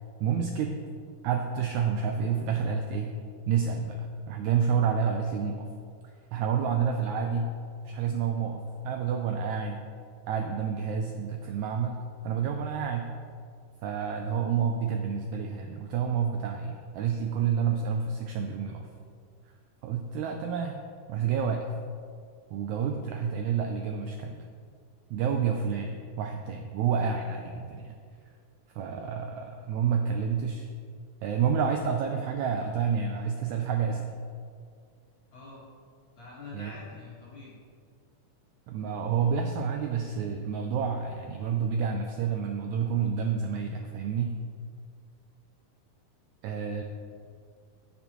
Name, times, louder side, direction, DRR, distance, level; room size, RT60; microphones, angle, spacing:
voice 1, 0.2-0.8 1.2-3.1 3.5-5.6 6.3-7.5 7.8-9.8 10.3-12.0 12.2-13.1 13.8-18.9 19.8-20.8 21.1-21.7 22.5-24.5 25.1-27.9 28.7-30.7 31.2-34.1 36.5-36.8 38.7-44.4 46.4-46.8, right 6 dB, 90° right, 3 dB, 1.6 m, -29 dB
voice 2, 35.3-35.6 36.1-37.6, left 3 dB, 45° left, -6 dB, 1.9 m, -45 dB
15.5 x 6.4 x 3.0 m, 2.2 s
omnidirectional pair, 4.0 m